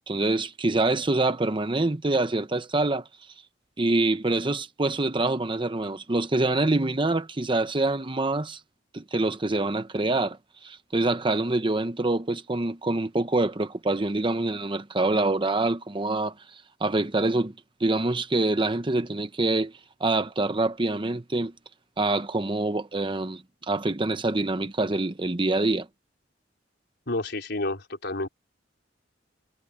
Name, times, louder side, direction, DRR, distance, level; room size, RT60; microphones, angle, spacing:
voice 1, 0.0-3.1 3.8-8.6 8.9-16.3 16.8-17.5 17.8-19.7 20.0-21.5 22.0-25.9, right 2 dB, 25° right, 0.9 m, -25 dB
voice 2, 27.1-28.3, left 2 dB, 65° left, 4.6 m, -30 dB
head